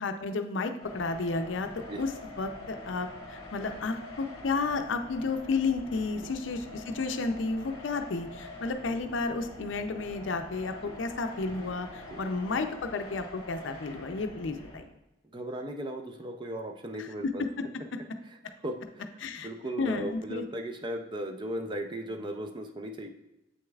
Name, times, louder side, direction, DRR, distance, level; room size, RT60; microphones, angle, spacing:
voice 1, 0.0-1.7 2.0-2.1 2.4-14.9 17.0-17.1 19.2-19.5 19.8-20.4, left 3 dB, 65° left, 7 dB, 0.5 m, -32 dB
sound 1, 0.8-14.8, left 1 dB, 25° left, 2.2 m, -45 dB
voice 2, 15.3-17.4 18.3-18.4 18.6-19.1 19.4-23.1, right 1 dB, 25° right, 5 dB, 0.5 m, -37 dB
7.7 x 6.4 x 2.3 m, 0.96 s
head